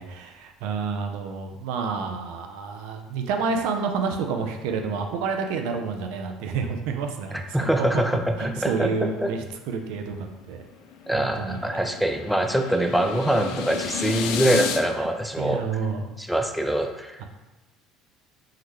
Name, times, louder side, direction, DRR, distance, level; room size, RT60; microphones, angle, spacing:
voice 1, 0.0-8.0 8.4-10.6 11.1-11.6 15.0-15.1 15.4-16.1 17.2-17.3, right 5 dB, 80° right, 4 dB, 0.4 m, -29 dB
voice 2, 7.3-8.9 9.2-9.3 11.1-15.6 16.2-17.2, right 1 dB, ahead, 4 dB, 0.3 m, -24 dB
sound 1, 10.5-14.8, left 7 dB, 75° left, 0.3 m, -32 dB
3.7 x 2.1 x 3.1 m, 1.1 s
supercardioid pair, 95°, 0 cm